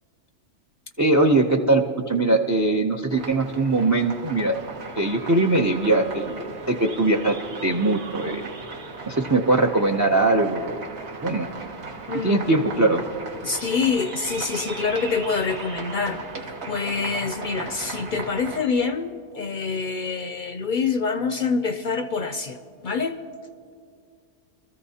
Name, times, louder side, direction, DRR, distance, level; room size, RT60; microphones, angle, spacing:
voice 1, 1.0-4.5 5.0-6.4 6.7-7.4 7.6-8.5 9.1-10.8 11.2-11.5 12.1-13.0, right 2 dB, 30° right, 5 dB, 0.3 m, -21 dB
sound 1, 3.1-18.6, right 4 dB, 65° right, 1.4 m, -37 dB
Wind instrument woodwind instrument, 4.5-16.8, right 4 dB, 85° right, 1.5 m, -48 dB
voice 2, 12.1-12.6 13.4-23.2, left 5 dB, 60° left, 9 dB, 0.5 m, -26 dB
23.5 x 14.0 x 2.8 m, 2.3 s
omnidirectional pair, 1.2 m